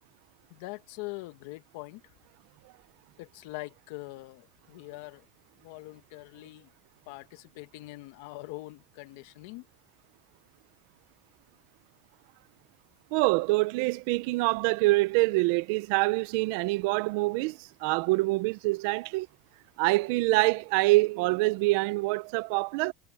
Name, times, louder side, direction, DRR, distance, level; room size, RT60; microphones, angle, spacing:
voice 1, 0.5-2.0 3.2-5.2 5.6-6.7 7.1-9.7, left 21 dB, 70° left, 1.5 m, -43 dB
voice 2, 13.1-19.3 19.8-22.9, right 23 dB, 65° right, 0.7 m, -25 dB
supercardioid pair, 155°, 0 cm